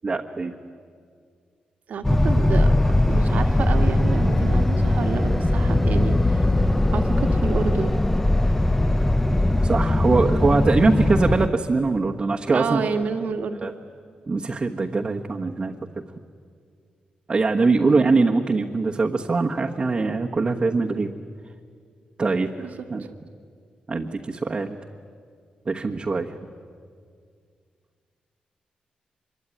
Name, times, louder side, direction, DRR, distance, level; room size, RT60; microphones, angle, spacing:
voice 1, 0.0-0.5 9.6-12.8 13.6-13.7 14.3-16.0 17.3-21.1 22.2-23.0 23.9-24.8 25.6-26.3, right 3 dB, 35° right, 0 dB, 1.3 m, -22 dB
voice 2, 1.9-6.5 6.9-8.0 12.5-13.6 17.8-18.0 22.6-22.7 23.0-23.1, right 5 dB, 70° right, 7 dB, 1.8 m, -29 dB
sound 1, 2.0-11.5, left 1 dB, 10° left, 0.8 m, -20 dB
25.0 x 23.0 x 10.0 m, 2.1 s
wide cardioid pair, 120°, 3 cm